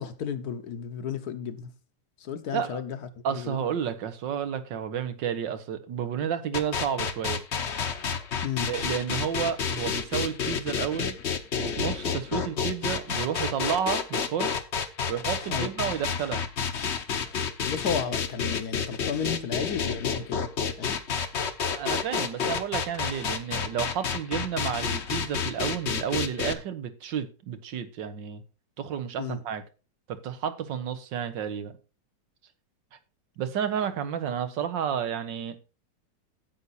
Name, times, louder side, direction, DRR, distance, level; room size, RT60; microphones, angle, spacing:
voice 1, 0.0-1.7 2.2-3.0 3.3-3.6 8.4-8.7 15.5-15.7 17.7-20.5 20.8-21.0 29.2-29.4, left 7 dB, 65° left, 1.4 m, -33 dB
voice 2, 3.2-7.4 8.7-11.2 11.6-14.5 15.1-16.4 21.7-28.4 28.8-29.6 30.1-31.7 33.4-35.6, right 8 dB, 90° right, 1.7 m, -31 dB
sound 1, 6.5-26.5, left 6 dB, 45° left, 1.0 m, -29 dB
9.7 x 8.3 x 4.1 m
omnidirectional pair, 1.9 m